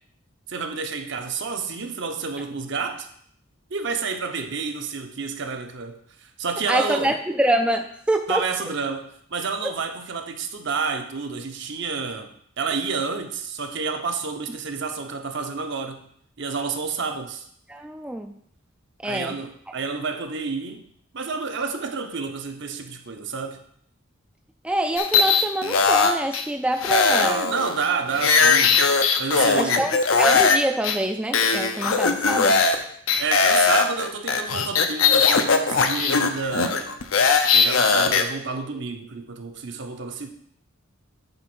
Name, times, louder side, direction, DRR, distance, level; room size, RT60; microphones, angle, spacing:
voice 1, 0.5-3.1 3.7-7.2 8.3-16.0 16.4-17.4 19.0-20.9 21.1-23.6 27.1-28.8 29.2-29.9 33.2-37.0 37.5-40.3, right 5 dB, 60° right, 0.8 m, -29 dB
voice 2, 6.7-8.5 17.7-18.3 19.0-19.4 24.6-27.5 29.6-32.6, right 1 dB, 5° right, 0.3 m, -25 dB
sound 1, 25.0-26.4 26.8-30.6 30.8-31.0 31.3-32.8 33.1-38.2, left 5 dB, 80° left, 0.7 m, -19 dB
8.0 x 3.6 x 6.0 m
head